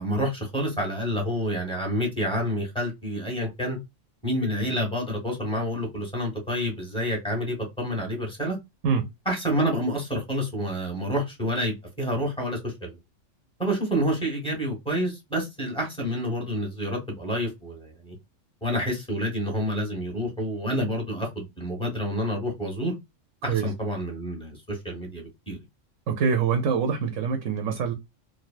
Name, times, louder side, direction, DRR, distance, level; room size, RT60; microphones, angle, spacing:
voice 1, 0.0-3.8 4.2-8.6 9.2-13.0 13.6-18.1 18.6-23.0 23.4-25.6, equal, 5° left, 1.2 m, -28 dB
voice 2, 26.1-27.9, right 6 dB, 75° right, 1.0 m, -24 dB
3.3 x 2.3 x 2.4 m
omnidirectional pair, 1.4 m